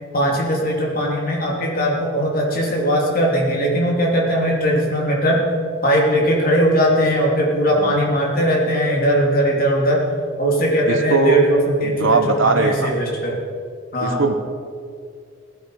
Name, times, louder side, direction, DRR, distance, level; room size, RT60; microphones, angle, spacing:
voice 1, 0.1-5.5 5.8-10.0 10.4-12.2 12.4-13.4 13.9-14.2, equal, 45° left, -2 dB, 3.0 m, -19 dB
voice 2, 10.9-11.4 11.8-12.9 14.0-14.3, right 3 dB, 70° right, 7 dB, 1.1 m, -19 dB
16.5 x 12.0 x 4.9 m, 2.3 s
head